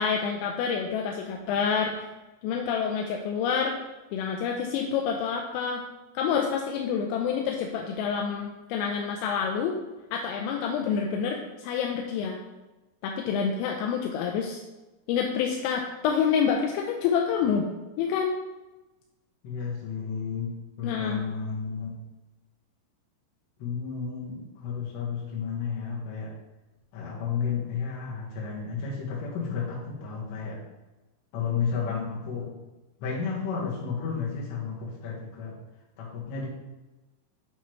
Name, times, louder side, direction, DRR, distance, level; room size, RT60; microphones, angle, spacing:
voice 1, 0.0-2.1 2.4-3.8 4.1-5.8 6.1-9.8 10.1-12.4 13.0-14.6 15.1-17.7 18.0-18.3 20.8-21.2, left 7 dB, 85° left, 1 dB, 3.2 m, -27 dB
voice 2, 19.4-20.5 20.8-21.9 23.6-26.3 26.9-30.6 31.3-32.5 33.0-35.6 36.0-36.5, left 6 dB, 65° left, -4 dB, 3.4 m, -32 dB
8.7 x 5.7 x 3.1 m, 1.1 s
omnidirectional pair, 6.0 m